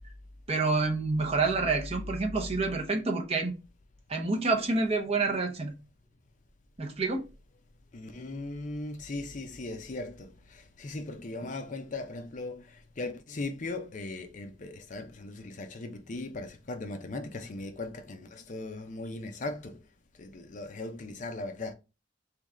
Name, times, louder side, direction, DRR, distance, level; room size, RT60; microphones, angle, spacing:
voice 1, 0.5-3.5 4.1-5.7 6.8-7.3, right 3 dB, 30° right, 0.7 m, -28 dB
voice 2, 7.9-12.6 13.0-19.8 20.2-21.7, left 2 dB, 40° left, 0.5 m, -38 dB
3.4 x 3.1 x 3.6 m
head